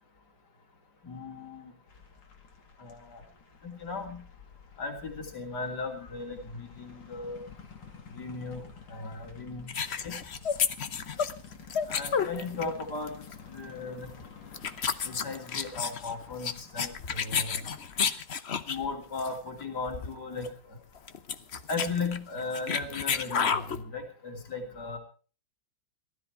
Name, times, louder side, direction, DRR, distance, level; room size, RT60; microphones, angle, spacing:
voice 1, 1.0-1.7 2.8-3.2 3.6-4.2 4.8-7.4 8.2-8.6 8.9-9.7 10.0-10.2 11.9-13.1 13.5-14.1 15.0-17.6 18.7-20.5 21.7-25.0, left 3 dB, 60° left, 3 dB, 3.5 m, -36 dB
sound 1, 1.9-18.2, left 6 dB, 80° left, 3.0 m, -51 dB
sound 2, 9.7-12.8 13.1-13.3 14.1-14.2 14.5-18.9 19.2-19.4 19.6-19.7 19.9-20.1 20.4-20.5 21.0-23.8, left 6 dB, 45° left, 1.0 m, -31 dB
19.0 x 13.0 x 4.7 m, 0.38 s
omnidirectional pair, 2.0 m